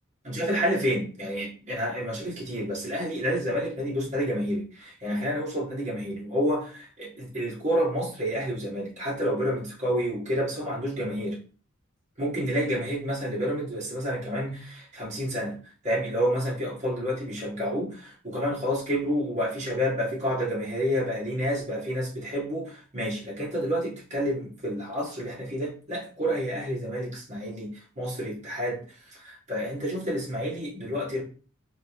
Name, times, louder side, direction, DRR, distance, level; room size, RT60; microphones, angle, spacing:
voice 1, 0.2-11.4 12.2-15.6 15.8-28.8 29.2-31.2, equal, 35° right, -5 dB, 1.5 m, -29 dB
3.4 x 2.7 x 2.9 m, 0.38 s
head